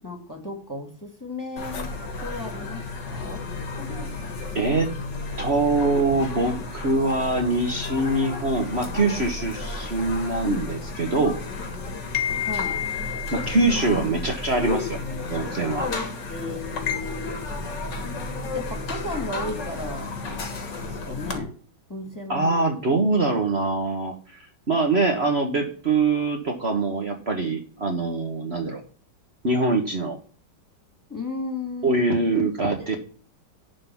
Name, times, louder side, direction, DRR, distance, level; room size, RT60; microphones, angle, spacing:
voice 1, 0.0-1.9 2.2-3.4 10.4-10.7 12.4-12.8 16.3-17.5 18.5-20.2 20.8-21.5 21.9-22.8 31.1-32.5 32.8-33.0, left 3 dB, 10° left, 3 dB, 2.1 m, -34 dB
sound 1, 1.6-21.4, left 4 dB, 90° left, 2.4 m, -32 dB
voice 2, 4.5-4.9 5.4-11.4 13.3-15.0 15.3-15.9 22.3-28.8 29.4-30.2 31.8-33.0, right 3 dB, 40° right, 2 dB, 1.5 m, -24 dB
11.0 x 4.0 x 7.2 m, 0.42 s
omnidirectional pair, 1.9 m